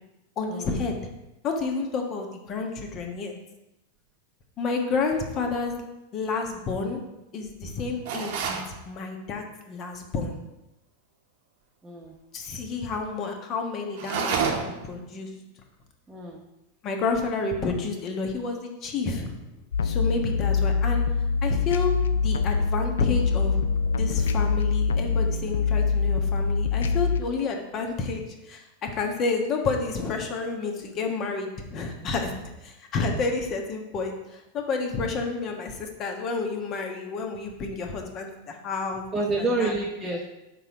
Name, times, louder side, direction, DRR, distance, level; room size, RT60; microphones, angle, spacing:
voice 1, 0.4-1.0 1.4-3.3 4.6-5.8 6.1-7.0 7.3-10.4 12.3-15.3 16.8-19.3 19.8-21.1 21.4-23.6 24.0-32.3 32.6-39.0 39.4-39.8, left 4 dB, 35° left, 3 dB, 1.3 m, -30 dB
sound 1, 8.0-8.7 13.9-14.9, right 6 dB, 50° right, 1.1 m, -28 dB
voice 2, 11.8-12.1 16.1-16.4 39.1-40.3, right 2 dB, 15° right, -2 dB, 0.9 m, -28 dB
sound 2, 19.7-27.2, left 5 dB, 65° left, 0.4 m, -24 dB
6.9 x 4.3 x 6.1 m, 0.96 s
figure-of-eight pair, 90°, 0 cm